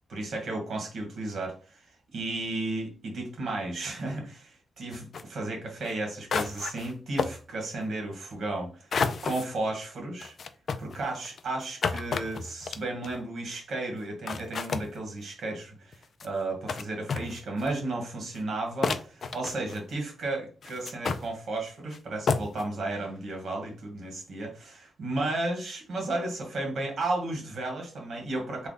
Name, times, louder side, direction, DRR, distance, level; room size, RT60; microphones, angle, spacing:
voice 1, 0.1-1.9 2.1-8.9 9.2-10.3 10.8-28.7, right 2 dB, 65° right, 2 dB, 1.4 m, -33 dB
sound 1, 4.9-5.2 5.8-5.9 6.3-6.9 7.2-7.4 8.9-9.5 10.2-13.2 14.0-14.1 14.3-14.9 15.9-16.3 16.7-16.8 17.1-17.7 18.3-18.4 18.8-19.9 20.6-21.2 21.9-22.0 22.3-22.6, left 5 dB, 55° left, 0.3 m, -31 dB
3.3 x 2.2 x 3.8 m, 0.38 s
cardioid pair, 115°, 0 cm